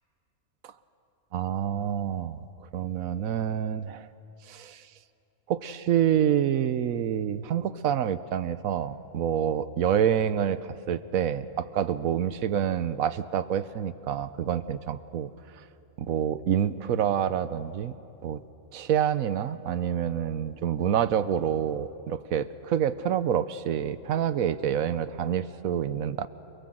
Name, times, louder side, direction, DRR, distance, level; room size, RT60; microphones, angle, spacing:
voice 1, 1.3-2.5 2.7-4.1 4.5-4.8 5.5-10.6 10.9-15.3 16.0-17.9 18.2-18.4 18.7-26.3, right 9 dB, 80° right, 14 dB, 1.2 m, -27 dB
29.0 x 21.5 x 7.8 m, 2.8 s
omnidirectional pair, 1.4 m